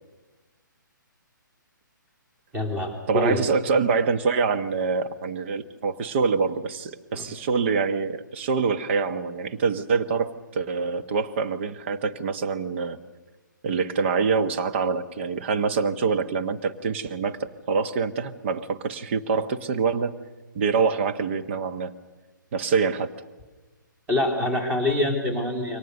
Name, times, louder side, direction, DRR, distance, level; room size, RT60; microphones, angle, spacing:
voice 1, 2.5-3.5 7.1-7.3 24.1-25.8, left 2 dB, 10° right, 5 dB, 3.6 m, -25 dB
voice 2, 3.1-13.0 13.6-17.4 17.7-20.2 20.5-21.9 22.5-23.1, right 5 dB, 35° right, 9 dB, 1.3 m, -25 dB
28.5 x 24.0 x 6.6 m, 1.2 s
figure-of-eight pair, 130°, 11 cm